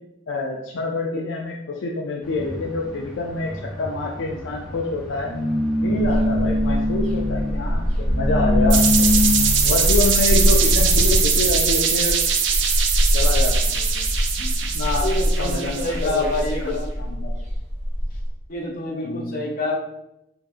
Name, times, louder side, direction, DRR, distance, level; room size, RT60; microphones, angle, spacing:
voice 1, 0.3-5.3 5.8-9.1 9.6-12.2 13.1-14.1 14.4-16.3 16.6-17.3 19.0-19.3, left 3 dB, 70° left, 0 dB, 0.4 m, -27 dB
sound 1, 2.2-11.2, left 2 dB, 5° right, 1.1 m, -25 dB
sound 2, 6.0-18.3, equal, 40° right, 1.0 m, -23 dB
sound 3, 8.7-16.5, right 6 dB, 65° right, 0.5 m, -22 dB
voice 2, 15.0-16.9 18.5-19.8, left 1 dB, 45° left, -1 dB, 0.8 m, -27 dB
3.8 x 2.5 x 3.4 m, 0.83 s
head